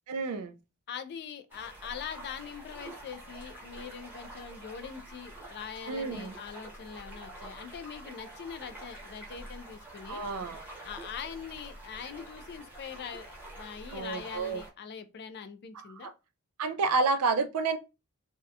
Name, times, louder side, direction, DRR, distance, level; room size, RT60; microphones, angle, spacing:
voice 1, 0.1-0.6 5.9-6.3 10.1-10.6 13.9-14.6 15.7-16.1 16.6-17.8, right 4 dB, 80° right, 0.4 m, -30 dB
voice 2, 0.9-10.2 10.8-16.1, left 7 dB, 50° left, 0.3 m, -42 dB
sound 1, 1.5-14.7, right 1 dB, 10° right, 0.7 m, -47 dB
2.7 x 2.1 x 2.3 m
head